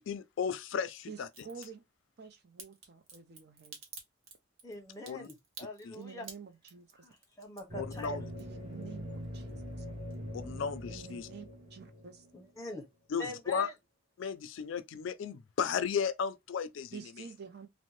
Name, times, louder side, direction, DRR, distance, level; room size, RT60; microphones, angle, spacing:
voice 1, 0.1-1.3 5.1-5.3 5.8-5.9 7.7-8.2 10.3-11.3 13.1-13.7 14.2-17.0, left 6 dB, 70° left, 0.3 m, -34 dB
voice 2, 1.1-1.8 2.2-3.8 5.9-7.1 8.4-9.9 10.9-12.3 16.9-17.7, right 6 dB, 55° right, 0.5 m, -49 dB
Crack, 1.3-1.7 2.6-8.8 9.1-9.8 10.1-10.2, right 4 dB, 75° right, 0.9 m, -50 dB
voice 3, 4.6-6.3 7.0-8.2 12.3-12.9 13.2-13.7, left 1 dB, 15° left, 0.7 m, -44 dB
sound 1, 7.7-12.5, equal, 35° right, 1.0 m, -43 dB
2.6 x 2.1 x 3.1 m
head